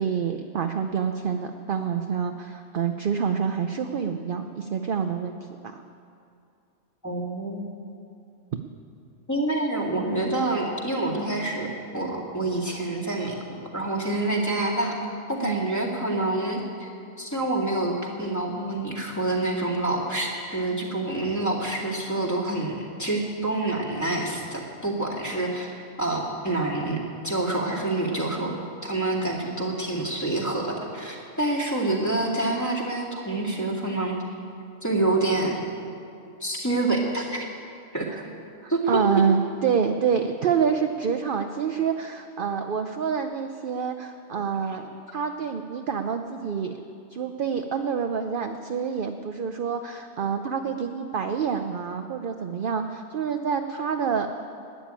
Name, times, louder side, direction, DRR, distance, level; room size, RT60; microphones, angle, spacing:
voice 1, 0.0-5.8 15.4-15.6 38.0-38.2 38.6-46.8 47.1-54.3, right 6 dB, 55° right, 6 dB, 0.7 m, -27 dB
voice 2, 7.0-7.7 9.3-13.4 13.7-15.0 15.3-16.9 17.2-27.0 27.2-28.6 28.8-34.2 34.8-35.6 36.4-37.5 37.9-38.1 38.7-39.0, right 2 dB, 15° left, -3 dB, 2.1 m, -27 dB
12.5 x 10.0 x 8.9 m, 2.5 s
omnidirectional pair, 1.3 m